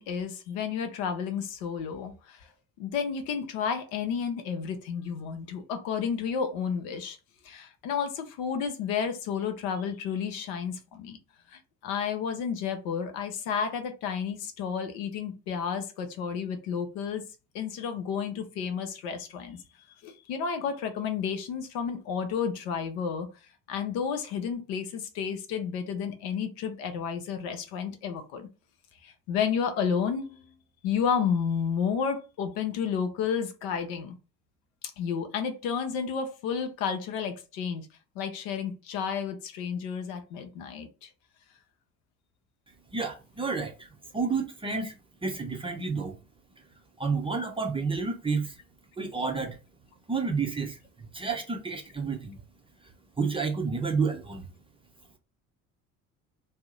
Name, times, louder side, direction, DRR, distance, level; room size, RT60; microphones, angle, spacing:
voice 1, 0.0-2.5 2.8-7.2 7.4-11.2 11.5-17.2 17.5-19.6 20.0-23.3 23.7-28.5 29.0-30.5 30.8-34.1 35.0-37.9 38.2-41.1, left 7 dB, 55° left, 0.7 m, -31 dB
voice 2, 42.9-43.9 44.1-44.9 45.2-46.2 47.0-48.5 49.0-49.6 50.1-52.4 53.2-54.5, right 4 dB, 15° right, 0.6 m, -30 dB
2.7 x 2.0 x 3.7 m
figure-of-eight pair, 55°, 42 cm